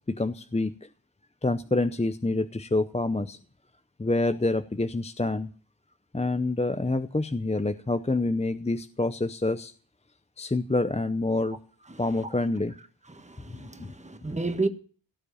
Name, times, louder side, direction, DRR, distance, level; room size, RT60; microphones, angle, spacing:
voice 1, 0.1-0.7 1.4-3.4 4.0-5.5 6.1-9.7 10.4-11.6 12.0-12.7 13.5-13.9, left 2 dB, 15° left, 0.7 m, -27 dB
voice 2, 13.1-14.7, right 3 dB, 15° right, 1.5 m, -31 dB
17.5 x 7.8 x 8.6 m
wide cardioid pair, 100°, 47 cm